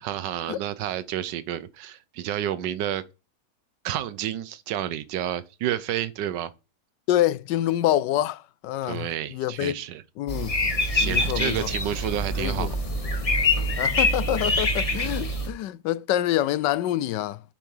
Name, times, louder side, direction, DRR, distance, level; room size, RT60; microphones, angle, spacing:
voice 1, 0.0-3.0 3.8-6.5 8.8-10.0 10.9-12.8 15.0-15.3, right 11 dB, 90° right, 1.4 m, -30 dB
voice 2, 7.1-9.8 10.2-10.5 11.0-11.7 12.4-12.7 13.8-17.4, left 13 dB, 90° left, 1.3 m, -26 dB
sound 1, 10.3-15.5, left 2 dB, 25° left, 1.1 m, -25 dB
7.5 x 7.3 x 5.5 m
omnidirectional pair, 1.8 m